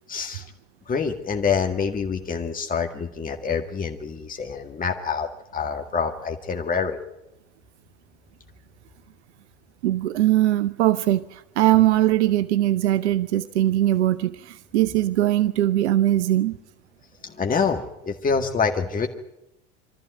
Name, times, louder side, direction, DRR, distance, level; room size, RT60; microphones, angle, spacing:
voice 1, 0.1-0.4 0.9-7.0 17.2-19.1, left 5 dB, 25° left, 4 dB, 1.9 m, -26 dB
voice 2, 9.8-16.6, right 14 dB, 75° right, 15 dB, 0.8 m, -21 dB
24.5 x 14.0 x 9.3 m, 0.90 s
hypercardioid pair, 80°, 34 cm